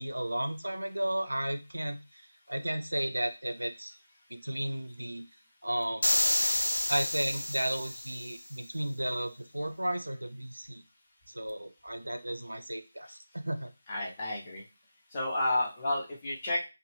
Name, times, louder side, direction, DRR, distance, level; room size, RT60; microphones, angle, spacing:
voice 1, 0.0-2.2 2.5-3.9 4.3-5.2 5.6-6.2 6.9-10.8 11.3-13.7, right 1 dB, 80° right, 7 dB, 0.5 m, -34 dB
sound 1, 6.0-8.3, left 1 dB, 85° left, 0.3 m, -29 dB
voice 2, 13.9-14.6 15.1-16.7, left 1 dB, 25° left, -4 dB, 0.9 m, -31 dB
2.6 x 2.1 x 3.2 m, 0.28 s
figure-of-eight pair, 155°, 0 cm